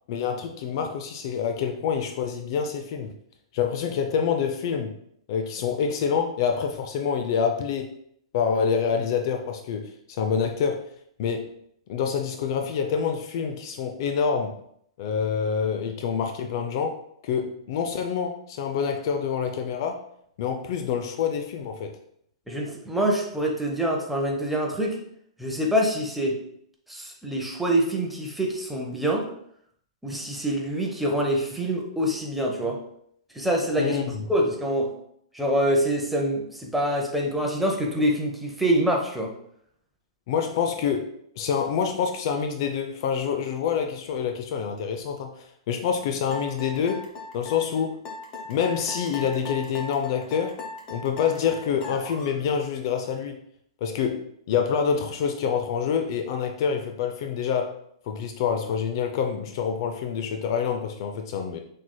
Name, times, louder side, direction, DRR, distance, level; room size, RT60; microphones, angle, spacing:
voice 1, 0.1-3.1 3.5-5.0 5.3-7.9 8.3-10.8 11.2-11.5 11.9-14.6 15.0-16.9 17.2-20.0 20.4-21.9 33.8-34.2 40.3-41.1 41.4-47.0 47.3-48.0 48.5-50.6 50.9-53.4 53.8-57.7 58.1-61.6, left 7 dB, 50° left, 5 dB, 0.5 m, -27 dB
voice 2, 22.5-25.0 25.4-26.4 26.9-29.3 30.0-32.8 33.3-34.0 34.3-34.9 35.3-39.3, right 1 dB, 5° right, -1 dB, 0.9 m, -25 dB
sound 1, 46.3-52.4, left 3 dB, 30° left, 0.8 m, -38 dB
5.8 x 3.2 x 2.2 m, 0.69 s
hypercardioid pair, 120°, 3 cm